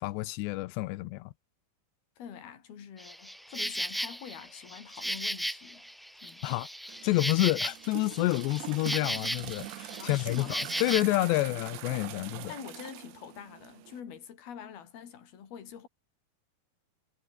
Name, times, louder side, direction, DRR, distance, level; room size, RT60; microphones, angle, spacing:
voice 1, 0.0-1.3 6.4-6.7 7.0-12.5, left 19 dB, 90° left, 2.9 m, -29 dB
voice 2, 2.2-5.8 6.2-6.5 10.0-10.6 12.5-15.9, left 8 dB, 60° left, 5.2 m, -45 dB
Insect, 3.0-11.0, equal, ahead, 3.1 m, -36 dB
sound 1, 6.9-14.0, right 13 dB, 80° right, 3.7 m, -43 dB
omnidirectional pair, 5.0 m